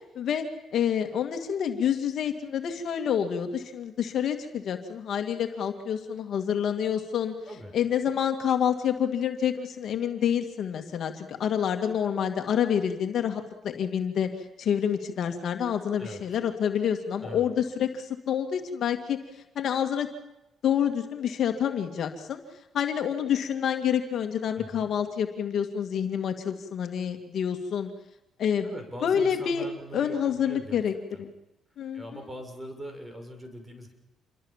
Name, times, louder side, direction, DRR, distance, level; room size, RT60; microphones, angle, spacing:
voice 1, 0.2-0.5 0.7-7.3 7.7-14.3 14.6-19.2 19.6-20.1 20.6-22.4 22.7-27.9 28.4-28.7 29.0-29.7 29.9-30.9 31.2-31.3 31.8-32.0, left 8 dB, 65° left, 5 dB, 2.2 m, -28 dB
voice 2, 24.6-24.9 28.6-30.8 31.1-31.2 31.9-33.9, equal, 15° right, 5 dB, 6.6 m, -41 dB
27.5 x 23.0 x 7.4 m, 0.92 s
cardioid pair, 90°, 0 cm